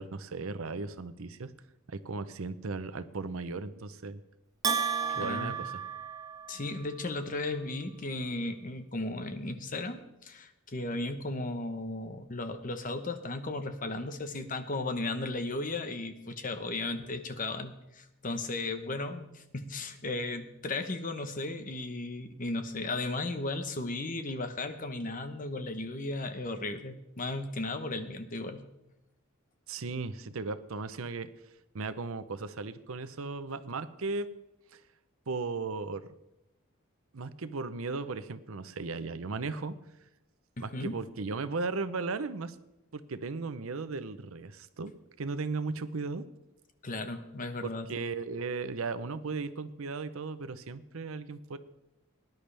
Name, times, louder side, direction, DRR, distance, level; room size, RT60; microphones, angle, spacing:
voice 1, 0.0-1.5 1.9-4.2 5.2-5.8 29.7-31.3 31.7-34.3 34.7-34.8 35.3-36.1 37.1-39.8 40.6-42.6 42.9-46.2 47.6-51.6, right 4 dB, 75° right, 12 dB, 0.7 m, -36 dB
Bell, 4.6-6.8, right 6 dB, 15° right, 0.7 m, -32 dB
voice 2, 5.1-5.6 6.5-28.6 40.6-40.9 46.8-47.9, left 2 dB, 40° left, 8 dB, 1.0 m, -35 dB
19.0 x 10.5 x 3.4 m, 0.92 s
head